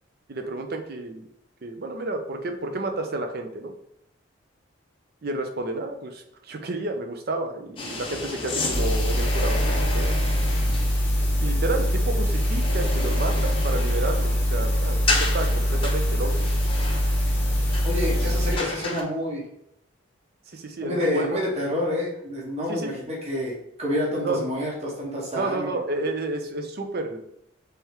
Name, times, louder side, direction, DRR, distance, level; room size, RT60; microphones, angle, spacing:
voice 1, 0.3-1.3 1.6-3.7 5.2-10.1 11.4-16.5 18.1-18.2 20.5-21.3 22.7-22.9 24.2-24.4 25.3-27.2, right 2 dB, 50° right, 6 dB, 0.6 m, -31 dB
sound 1, 7.8-19.0, left 2 dB, 25° left, 0.6 m, -32 dB
sound 2, 8.7-18.6, equal, 10° left, 1.0 m, -23 dB
voice 2, 17.8-19.4 20.8-25.7, left 1 dB, 30° right, -4 dB, 1.1 m, -28 dB
3.4 x 3.4 x 4.3 m, 0.74 s
head